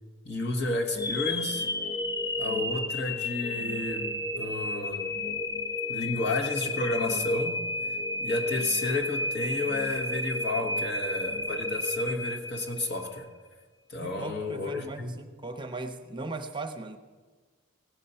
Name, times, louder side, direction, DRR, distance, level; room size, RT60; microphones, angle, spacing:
voice 1, 0.2-1.7 2.4-5.2 5.9-7.6 8.2-13.3 13.9-15.2, left 2 dB, 55° left, 3 dB, 1.4 m, -31 dB
sound 1, 1.0-13.1, left 2 dB, 20° left, 0.6 m, -32 dB
voice 2, 14.0-17.0, right 2 dB, 25° right, 5 dB, 0.8 m, -38 dB
17.5 x 7.5 x 5.6 m, 1.4 s
head